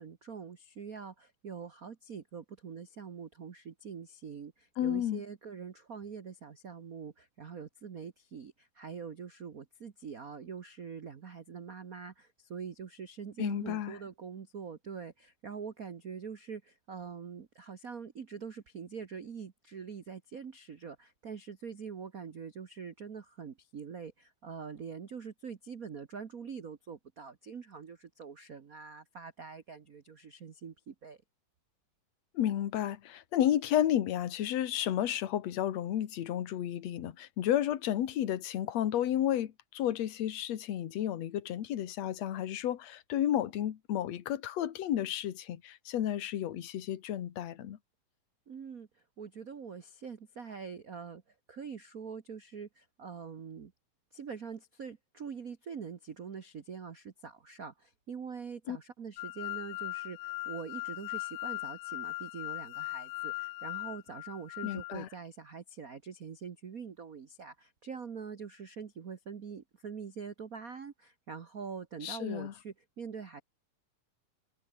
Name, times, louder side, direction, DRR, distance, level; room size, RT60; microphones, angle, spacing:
voice 1, 0.0-31.2 48.5-48.9 49.2-51.2 51.5-53.7 54.1-73.4, right 6 dB, 60° right, 0.8 m, -44 dB
voice 2, 4.8-5.2 13.4-13.9 32.4-47.8 58.7-58.8 64.6-65.1 72.0-72.5, left 11 dB, 60° left, 2.6 m, -32 dB
sound 1, 59.2-65.0, left 20 dB, 80° left, 1.7 m, -39 dB
omnidirectional pair, 3.5 m